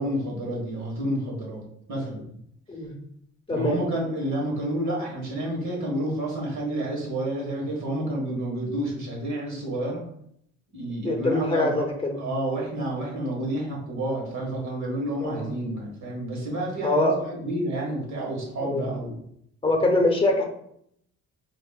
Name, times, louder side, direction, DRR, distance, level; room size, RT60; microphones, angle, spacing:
voice 1, 0.0-1.6 1.9-2.3 3.5-10.0 10.7-11.9 12.2-19.2, right 1 dB, 65° right, -2 dB, 1.5 m, -29 dB
voice 2, 3.5-3.8 11.0-12.2 15.2-15.5 16.8-17.1 18.6-18.8 19.6-20.4, left 2 dB, 20° left, 3 dB, 0.8 m, -23 dB
4.8 x 2.6 x 2.3 m, 0.71 s
cardioid pair, 90°, 30 cm